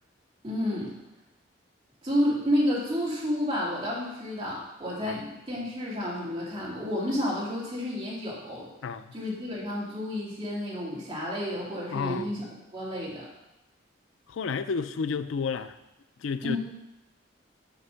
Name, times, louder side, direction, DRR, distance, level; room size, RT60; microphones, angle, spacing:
voice 1, 0.4-0.9 2.0-8.7 9.1-12.4 12.7-13.3 16.4-16.6, equal, 25° right, -7 dB, 2.6 m, -30 dB
voice 2, 8.8-9.1 11.9-12.3 14.3-15.8 16.2-16.6, left 5 dB, 80° left, 12 dB, 0.4 m, -31 dB
8.4 x 5.1 x 5.6 m, 0.94 s
head